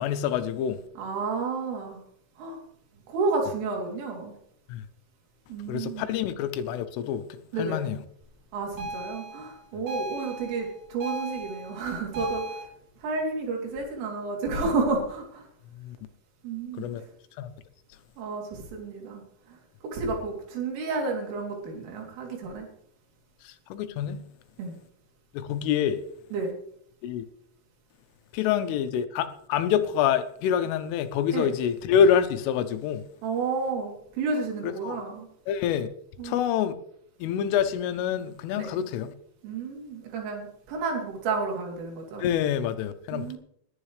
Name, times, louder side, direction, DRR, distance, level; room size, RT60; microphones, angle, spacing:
voice 1, 0.0-0.8 4.7-4.8 5.7-8.0 15.8-16.0 16.8-17.0 17.4-17.5 23.4-24.2 25.3-26.0 27.0-27.2 28.3-33.0 34.6-35.0 35.5-35.9 36.2-36.7 37.2-39.1 42.2-43.4, left 8 dB, 85° left, 3.5 m, -26 dB
voice 2, 1.0-2.0 2.4-2.6 3.1-4.3 5.5-6.1 7.5-7.8 8.5-12.6 13.0-15.5 16.4-17.0 18.2-19.2 19.5-19.6 19.8-22.7 24.6-24.7 26.3-26.5 31.3-31.5 33.2-35.3 36.2-36.4 38.5-38.7 39.4-42.3 43.1-43.4, right 4 dB, 80° right, 5.6 m, -31 dB
sound 1, 8.8-12.6, right 1 dB, 35° right, 6.2 m, -37 dB
20.0 x 11.0 x 3.3 m
omnidirectional pair, 5.6 m